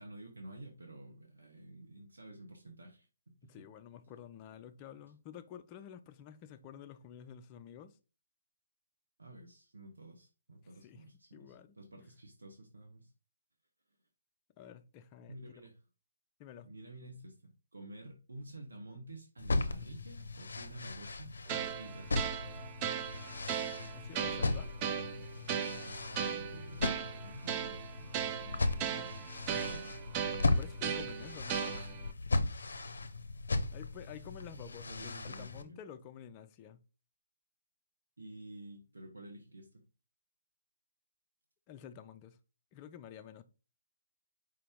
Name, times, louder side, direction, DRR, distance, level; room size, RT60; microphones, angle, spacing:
voice 1, 0.0-3.7 9.2-13.1 15.3-15.8 16.6-22.2 26.1-29.9 32.9-33.2 33.6-33.7 34.0-34.3 34.6-35.8 38.2-39.8, right 1 dB, 85° right, 1.0 m, -51 dB
voice 2, 3.4-8.0 10.8-11.0 11.3-12.0 14.6-15.6 16.4-16.7 23.1-24.7 30.4-32.1 33.0-33.1 33.7-36.8 41.7-42.4 42.7-43.4, left 9 dB, 25° left, 0.5 m, -51 dB
sound 1, 19.4-35.6, left 2 dB, 75° left, 0.6 m, -37 dB
sound 2, 21.5-32.1, right 8 dB, 30° right, 0.4 m, -38 dB
5.1 x 2.8 x 3.5 m
figure-of-eight pair, 140°, 0 cm